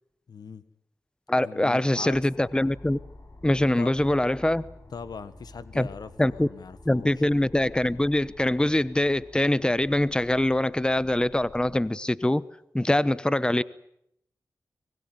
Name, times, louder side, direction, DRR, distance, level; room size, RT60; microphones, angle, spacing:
voice 1, 0.3-0.6 1.4-2.3 3.8-4.0 4.9-7.1, left 5 dB, 80° left, 1.5 m, -40 dB
voice 2, 1.3-3.0 3.4-4.7 5.8-5.9 6.2-6.5 6.8-12.4 12.7-13.6, left 1 dB, 15° left, 1.0 m, -23 dB
sound 1, 2.1-11.9, left 2 dB, 45° left, 6.5 m, -49 dB
24.0 x 21.0 x 9.5 m
cardioid pair, 45°, 7 cm